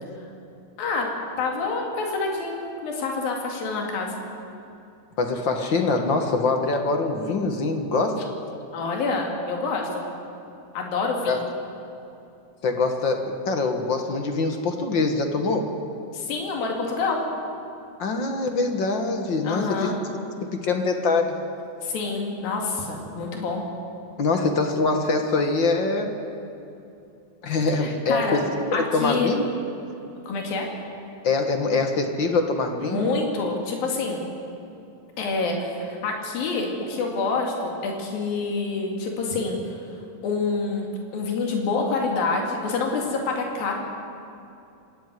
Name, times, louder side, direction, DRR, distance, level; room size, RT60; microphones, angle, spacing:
voice 1, 0.8-4.2 8.7-10.0 10.7-11.4 16.1-17.2 19.4-19.9 21.8-23.6 27.7-28.5 28.7-29.3 30.3-30.7 32.8-34.2 35.2-39.8 40.2-40.9 41.1-43.8, left 4 dB, 85° left, 0 dB, 4.1 m, -27 dB
voice 2, 5.2-8.2 11.3-11.4 12.6-15.7 18.0-19.9 20.4-21.4 24.2-26.2 27.4-29.4 31.2-33.1, left 3 dB, 50° left, 5 dB, 1.5 m, -24 dB
26.0 x 13.0 x 9.3 m, 2.7 s
omnidirectional pair, 4.0 m